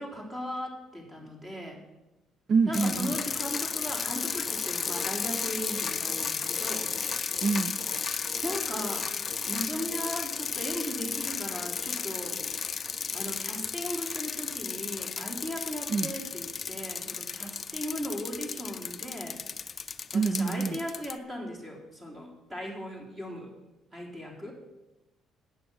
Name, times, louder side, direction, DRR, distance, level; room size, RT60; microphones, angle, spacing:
voice 1, 0.0-1.8 2.7-6.9 8.1-9.2 9.5-12.4 13.1-19.4 20.1-23.5 23.9-24.5, equal, 20° right, -1 dB, 3.4 m, -37 dB
voice 2, 2.5-3.2 7.4-7.8 15.9-16.1 20.1-20.8, right 4 dB, 50° right, 11 dB, 0.5 m, -26 dB
sound 1, 2.7-21.2, left 5 dB, 30° left, 0.5 m, -34 dB
11.0 x 8.9 x 6.3 m, 1.0 s
cardioid pair, 115°, 0 cm